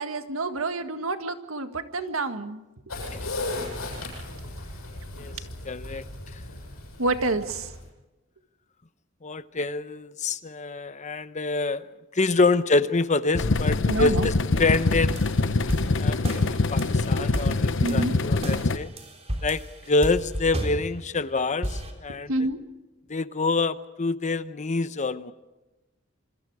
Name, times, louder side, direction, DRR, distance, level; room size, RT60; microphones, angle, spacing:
voice 1, 0.0-2.6 7.0-7.7 13.9-14.3 16.9-17.3 17.8-18.2 22.3-22.6, right 2 dB, 85° right, 8 dB, 1.8 m, -28 dB
sound 1, 2.9-7.9, left 2 dB, 85° left, 7.5 m, -36 dB
voice 2, 5.6-6.0 6.3-6.4 9.2-11.8 12.1-14.3 14.6-15.3 16.0-18.9 19.4-22.3 23.1-25.3, left 3 dB, 35° left, 13 dB, 0.9 m, -26 dB
sound 2, 13.3-18.8, left 3 dB, 65° left, 0.9 m, -24 dB
sound 3, 14.7-17.0 17.3-18.0 18.4-21.2 21.6-21.9, right 1 dB, 30° right, 3.7 m, -32 dB
27.5 x 25.5 x 4.9 m, 1.1 s
head